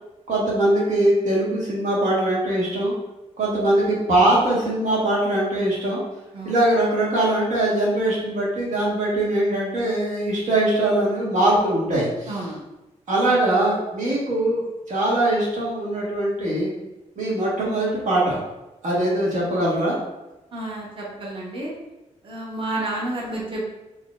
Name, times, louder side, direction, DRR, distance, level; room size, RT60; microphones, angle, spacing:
voice 1, 0.3-2.9 3.4-6.0 6.4-12.3 13.1-16.7 17.2-18.4 18.8-20.0, right 1 dB, 90° right, -5 dB, 1.3 m, -21 dB
voice 2, 12.3-12.6 20.5-21.7 22.2-23.7, right 2 dB, 45° right, -3 dB, 0.9 m, -30 dB
4.1 x 3.1 x 2.4 m, 0.97 s
wide cardioid pair, 140°, 12 cm